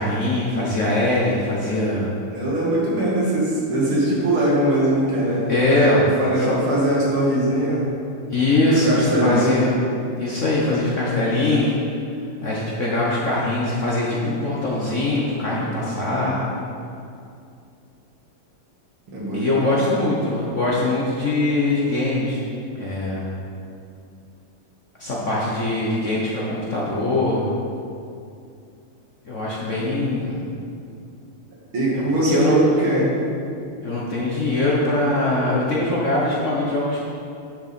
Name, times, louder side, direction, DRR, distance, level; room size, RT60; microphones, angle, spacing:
voice 1, 0.0-2.1 5.5-6.0 6.4-6.5 8.3-9.8 10.2-11.7 12.4-16.5 19.3-22.4 22.7-23.3 25.0-27.5 29.2-30.4 32.1-32.8 33.8-37.0, left 2 dB, 45° left, -5 dB, 1.1 m, -22 dB
voice 2, 2.3-7.8 8.8-9.6 19.1-19.8 31.7-33.1, right 1 dB, 70° right, -6 dB, 3.0 m, -21 dB
10.0 x 6.8 x 4.3 m, 2.5 s
omnidirectional pair, 2.4 m